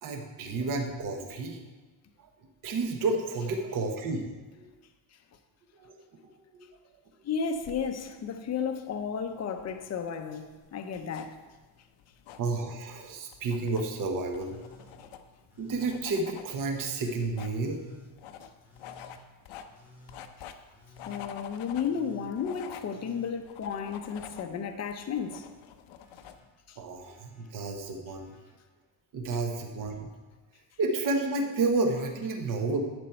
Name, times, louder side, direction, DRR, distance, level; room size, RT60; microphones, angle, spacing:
voice 1, 0.0-1.6 2.2-2.3 2.6-4.7 5.7-6.0 6.5-6.7 12.4-14.6 15.6-17.8 26.8-28.3 29.1-30.1 30.8-32.8, right 3 dB, 40° right, 1.2 m, -31 dB
voice 2, 7.2-11.4 21.1-25.5 26.7-26.8, left 6 dB, 35° left, 0.8 m, -33 dB
sound 1, 7.5-26.4, left 9 dB, 70° left, 0.9 m, -49 dB
Telephone, 13.4-13.9 14.4-15.0 15.5-16.0 16.5-17.1 17.6-18.1 18.6-19.2 19.7-20.2 20.7-21.3 21.8-22.3 22.8-24.4 24.7-25.4 26.0-26.5 27.0-27.5 28.1-28.6 29.8-29.9, equal, 5° right, 1.4 m, -56 dB
11.5 x 8.2 x 4.4 m
cardioid pair, 155°, 49 cm